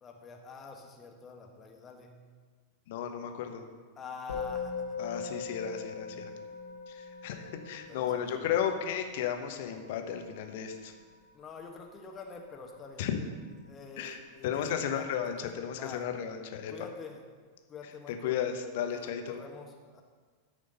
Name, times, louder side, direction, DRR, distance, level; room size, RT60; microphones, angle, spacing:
voice 1, 0.0-2.1 4.0-4.8 5.3-5.4 7.9-8.6 11.3-13.1 13.7-15.1 15.4-16.0 16.7-17.2 17.7-18.4 18.9-20.0, left 5 dB, 25° left, 2 dB, 1.5 m, -46 dB
voice 2, 2.9-3.6 5.0-6.3 6.9-10.9 13.0-13.2 14.0-16.7 18.1-19.4, left 8 dB, 50° left, 6 dB, 1.1 m, -34 dB
Musical instrument, 4.3-13.8, left 5 dB, 70° left, 1.5 m, -42 dB
13.5 x 5.1 x 5.4 m, 1.5 s
figure-of-eight pair, 90°, 0 cm